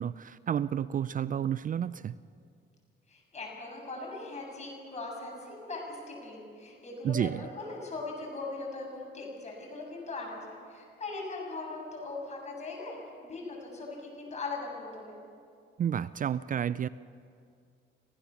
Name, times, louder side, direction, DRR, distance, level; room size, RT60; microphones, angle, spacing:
voice 1, 0.0-2.1 7.0-7.4 15.8-16.9, right 9 dB, 45° right, 17 dB, 0.4 m, -30 dB
voice 2, 3.1-13.0 13.2-15.1, left 3 dB, 35° left, -1 dB, 7.5 m, -40 dB
26.5 x 16.0 x 7.1 m, 2.3 s
cardioid pair, 90°, 20 cm